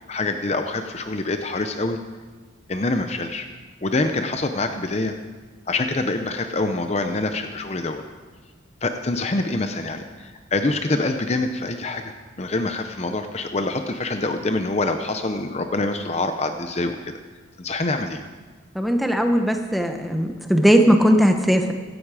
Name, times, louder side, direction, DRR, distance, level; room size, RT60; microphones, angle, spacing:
voice 1, 0.1-2.0 2.7-3.5 3.8-5.1 5.7-8.0 8.8-17.2 17.6-18.2, left 2 dB, 30° left, 7 dB, 0.6 m, -25 dB
voice 2, 18.7-21.7, equal, ahead, 4 dB, 1.0 m, -18 dB
16.5 x 13.0 x 4.9 m, 1.4 s
head